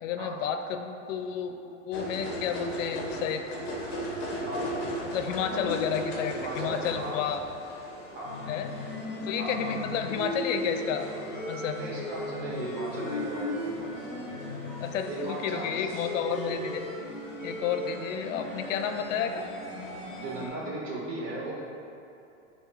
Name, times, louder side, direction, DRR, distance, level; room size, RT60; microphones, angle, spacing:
voice 1, 0.0-3.4 5.0-7.4 8.5-8.7 9.2-11.1 11.4-11.8 14.8-16.8 17.4-19.5, left 8 dB, 85° left, 7 dB, 0.5 m, -31 dB
sound 1, 1.9-20.5, equal, 15° left, 0.4 m, -36 dB
voice 2, 4.4-4.9 5.3-5.6 6.3-7.3 8.1-8.4 9.4-9.8 11.8-13.9 15.1-15.9 20.2-21.7, right 2 dB, 25° right, -4 dB, 0.6 m, -37 dB
5.6 x 2.3 x 3.9 m, 2.7 s
supercardioid pair, 170°, 37 cm